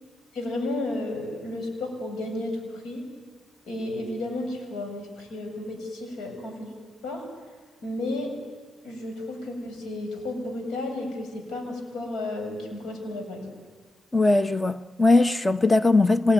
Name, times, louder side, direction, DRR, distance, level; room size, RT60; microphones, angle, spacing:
voice 1, 0.3-3.0 3.7-6.7 7.0-7.3 7.8-8.3 8.8-13.5, left 2 dB, 80° left, 7.5 m, -32 dB
voice 2, 14.1-16.3, left 2 dB, 20° left, 1.0 m, -20 dB
25.5 x 21.0 x 9.6 m
cardioid pair, 90°, 0 cm